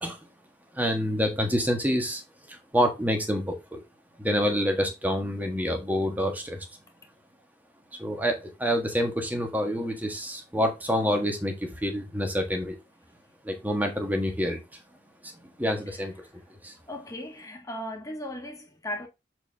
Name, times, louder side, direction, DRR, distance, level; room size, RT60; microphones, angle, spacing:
voice 1, 0.7-2.2 2.5-3.8 4.2-6.7 8.0-12.8 13.4-14.6 15.2-16.1 16.6-16.7, equal, 10° right, 1.4 m, -27 dB
voice 2, 16.9-19.1, left 1 dB, 20° left, 1.6 m, -37 dB
7.0 x 4.5 x 3.4 m
head